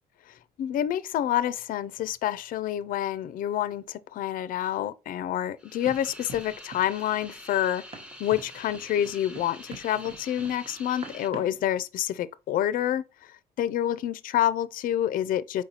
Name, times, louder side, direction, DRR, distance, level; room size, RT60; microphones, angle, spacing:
voice 1, 0.6-7.8 8.2-15.6, left 11 dB, 55° left, 0.4 m, -28 dB
sound 1, 5.6-11.3, equal, 5° right, 0.7 m, -46 dB
Run, 5.8-11.7, right 4 dB, 35° right, 0.9 m, -46 dB
4.8 x 4.0 x 2.8 m
cardioid pair, 110°, 17 cm